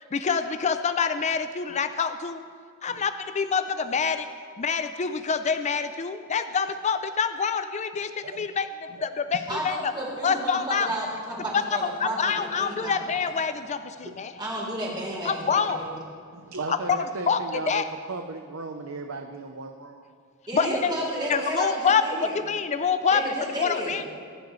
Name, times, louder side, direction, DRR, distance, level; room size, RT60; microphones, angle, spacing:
voice 1, 0.1-2.4 2.8-4.3 4.6-8.7 9.0-9.9 10.2-10.9 11.5-11.6 12.0-14.3 15.2-15.8 16.7-17.9 20.5-20.9 21.3-23.2 23.6-24.1, left 6 dB, 35° left, 10 dB, 0.5 m, -26 dB
voice 2, 9.5-13.3 14.4-15.4 15.7-15.9 20.5-22.4 23.1-24.0, right 1 dB, 20° right, -4 dB, 3.8 m, -32 dB
voice 3, 16.3-20.1, right 3 dB, 75° right, 5 dB, 0.7 m, -36 dB
24.0 x 10.5 x 3.2 m, 2.1 s
head